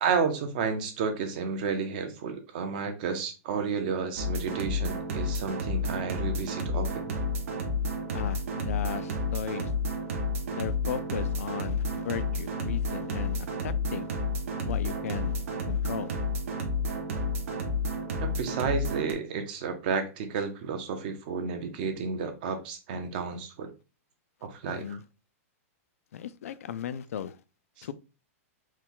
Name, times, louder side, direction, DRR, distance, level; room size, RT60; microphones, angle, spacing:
voice 1, 0.0-7.1 18.2-23.7 24.4-25.0 27.8-27.9, right 5 dB, 35° right, 0.8 m, -31 dB
sound 1, 4.2-19.1, left 2 dB, 60° right, 1.1 m, -31 dB
voice 2, 8.1-9.7 10.5-14.1 14.6-15.4 15.7-16.1 24.7-25.0 26.1-27.4 27.8-27.9, left 9 dB, 70° left, 0.4 m, -36 dB
4.5 x 2.3 x 3.7 m
supercardioid pair, 175°, 8 cm